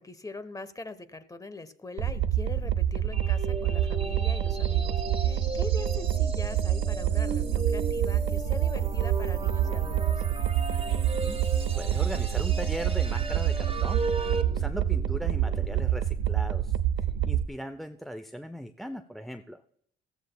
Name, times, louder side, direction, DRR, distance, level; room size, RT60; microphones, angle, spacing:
voice 1, 0.0-10.2, left 3 dB, 15° left, 13 dB, 0.9 m, -42 dB
sound 1, 2.0-17.5, right 10 dB, 90° right, 0.6 m, -27 dB
sound 2, 3.1-14.4, right 3 dB, 30° right, 1.4 m, -36 dB
sound 3, 9.0-15.7, left 6 dB, 85° left, 3.2 m, -49 dB
voice 2, 11.0-11.4 11.7-19.6, equal, ahead, 8 dB, 0.5 m, -39 dB
15.0 x 14.5 x 2.2 m, 0.70 s
cardioid pair, 90°, 20 cm